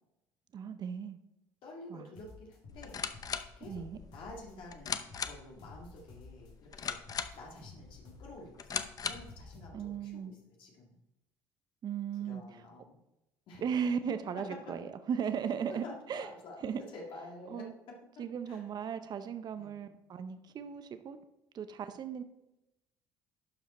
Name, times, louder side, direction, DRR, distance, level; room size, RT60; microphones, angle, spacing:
voice 1, 0.5-1.2 1.9-2.1 3.7-4.0 9.7-10.3 11.8-12.4 13.6-15.8 16.1-16.3 16.6-16.8 17.5-17.7 18.2-21.2 21.5-22.2, right 7 dB, 45° right, 10 dB, 0.7 m, -36 dB
voice 2, 1.6-3.0 3.6-3.8 4.1-7.1 7.3-11.0 12.2-13.0 13.5-13.6 15.8-17.6 18.5-18.6 19.6-19.8, left 2 dB, 65° left, -2 dB, 1.9 m, -50 dB
sound 1, 2.2-4.5 4.9-6.5 6.8-10.0, left 3 dB, 80° left, 2.8 m, -53 dB
sound 2, 2.7-9.4, left 7 dB, 40° left, 0.7 m, -40 dB
11.5 x 4.8 x 4.2 m, 0.92 s
supercardioid pair, 75°, 9 cm